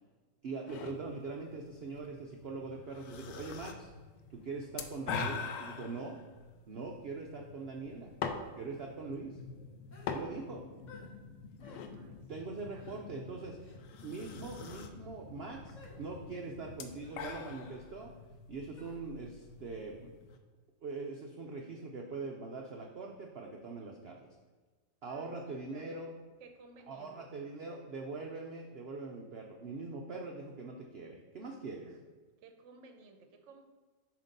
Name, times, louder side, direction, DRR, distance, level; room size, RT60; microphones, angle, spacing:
voice 1, 0.4-3.9 4.3-6.2 6.7-8.1 8.6-9.4 10.1-10.6 12.3-13.6 14.0-18.1 18.5-20.1 20.8-24.2 25.0-26.1 26.9-31.9, right 3 dB, 85° right, 1 dB, 0.5 m, -42 dB
sound 1, 0.7-20.4, left 5 dB, 85° left, 1.2 m, -45 dB
sound 2, 8.8-17.3, left 4 dB, 65° left, 0.6 m, -52 dB
sound 3, 9.9-10.2 10.9-11.1 11.6-11.9 12.8-13.0 13.6-13.8 14.5-14.8 15.8-16.0 17.0-17.2 18.8-19.0, left 3 dB, 30° left, 1.1 m, -55 dB
voice 2, 11.9-12.9 25.1-26.0 26.4-27.3 31.8-32.0 32.4-33.6, right 3 dB, 60° right, 5 dB, 0.8 m, -57 dB
7.3 x 2.9 x 5.2 m, 1.3 s
omnidirectional pair, 1.8 m